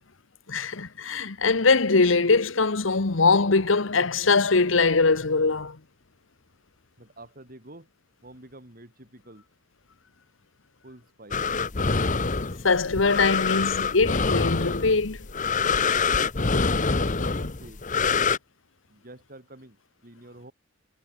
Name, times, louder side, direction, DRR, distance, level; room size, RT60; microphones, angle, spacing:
voice 1, 0.5-5.8 12.6-15.2, left 4 dB, 80° left, 1.2 m, -22 dB
voice 2, 7.0-7.9 8.2-9.4 10.8-11.6 16.7-17.8 18.9-20.5, right 1 dB, 45° right, 4.3 m, -48 dB
sound 1, 11.3-18.4, left 4 dB, 40° left, 1.1 m, -25 dB
head